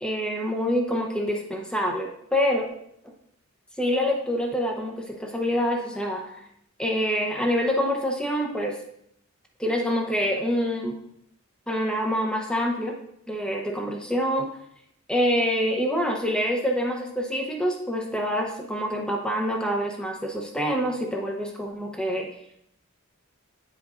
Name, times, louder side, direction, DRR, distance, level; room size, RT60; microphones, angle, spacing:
voice 1, 0.0-2.7 3.8-6.4 6.8-8.8 9.6-11.0 11.7-13.0 13.3-14.5 15.1-22.3, equal, 5° left, 1 dB, 0.7 m, -26 dB
9.1 x 5.1 x 2.5 m, 0.73 s
head